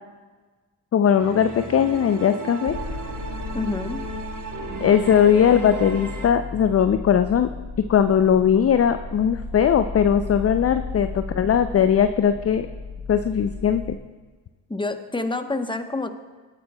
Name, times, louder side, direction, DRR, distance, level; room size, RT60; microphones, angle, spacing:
voice 1, 0.9-2.8 4.8-7.5 7.9-12.7 13.1-14.0, left 8 dB, 30° left, 10 dB, 0.5 m, -19 dB
sound 1, 1.2-6.3, right 3 dB, 40° right, 1.3 m, -34 dB
sound 2, 2.7-13.9, left 3 dB, 75° left, 2.2 m, -35 dB
voice 2, 3.5-4.0 14.7-16.1, left 2 dB, 10° left, 8 dB, 0.9 m, -27 dB
18.5 x 8.6 x 2.2 m, 1.4 s
hypercardioid pair, 40°, 50 cm